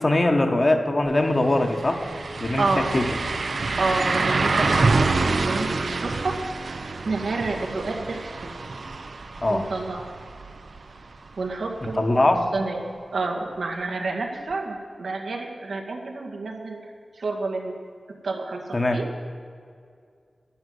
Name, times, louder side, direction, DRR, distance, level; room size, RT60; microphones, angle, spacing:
voice 1, 0.0-2.0 2.4-3.1 9.4-9.6 12.0-12.5 18.7-19.0, left 2 dB, 35° left, 3 dB, 1.3 m, -21 dB
sound 1, 1.1-1.2 1.5-11.3 11.6-11.7 14.5-14.6, right 3 dB, 65° right, 0.8 m, -27 dB
voice 2, 2.6-3.0 3.8-5.1 5.4-6.3 7.0-8.5 9.5-10.1 11.4-12.0 12.5-12.8 13.1-16.8 17.2-17.8 18.2-19.1, right 3 dB, 90° right, 2 dB, 2.0 m, -29 dB
11.5 x 10.5 x 8.0 m, 2.2 s
wide cardioid pair, 110°, 0 cm